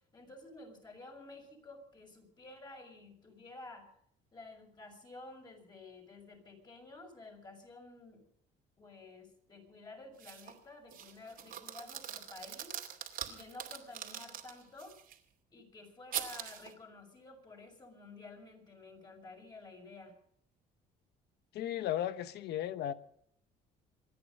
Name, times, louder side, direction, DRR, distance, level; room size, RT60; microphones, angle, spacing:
voice 1, 0.1-3.9 4.3-8.2 8.8-12.8 13.3-15.0 15.5-20.1, left 2 dB, 25° left, 6.1 m, -52 dB
sound 1, 10.2-10.6 10.9-15.2 16.1-16.7, right 9 dB, 55° right, 2.6 m, -43 dB
voice 2, 21.5-22.9, left 11 dB, 75° left, 1.1 m, -35 dB
27.0 x 9.8 x 5.3 m
cardioid pair, 110°, 17 cm